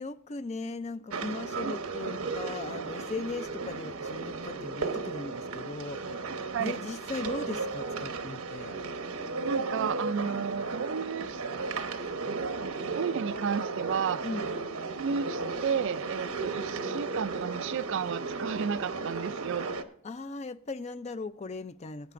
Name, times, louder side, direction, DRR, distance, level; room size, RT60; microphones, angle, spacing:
voice 1, 0.0-8.8 10.3-10.4 14.2-14.5 20.0-22.1, left 3 dB, 30° left, 0.4 m, -38 dB
sound 1, 1.1-19.8, right 4 dB, 80° right, 1.0 m, -35 dB
voice 2, 6.3-6.8 9.4-11.4 12.3-14.3 15.0-19.7, right 6 dB, 55° right, 0.3 m, -33 dB
20.0 x 9.1 x 2.5 m
head